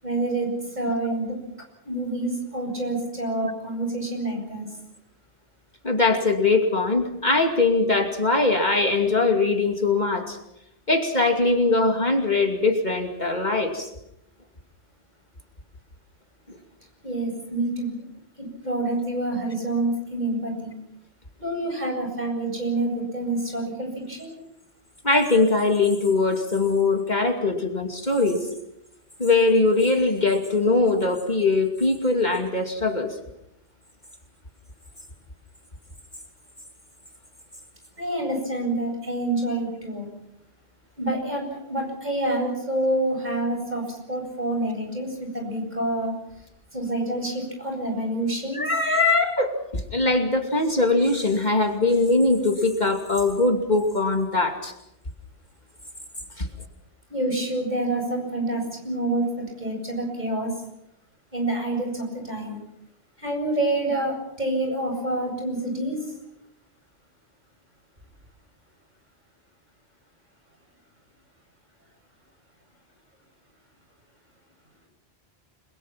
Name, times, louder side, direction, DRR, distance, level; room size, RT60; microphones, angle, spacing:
voice 1, 0.0-1.4 1.8-4.7 17.0-18.0 18.4-20.7 21.4-24.4 38.0-40.1 41.0-46.1 46.7-48.6 57.1-60.5 61.3-62.6 63.2-66.1, right 1 dB, 40° right, 1 dB, 8.2 m, -27 dB
voice 2, 5.8-10.4 10.9-13.9 25.0-28.5 29.2-33.2 48.5-54.7 56.4-56.5, left 3 dB, 45° left, 3 dB, 2.7 m, -21 dB
29.5 x 22.0 x 6.0 m, 0.83 s
omnidirectional pair, 1.1 m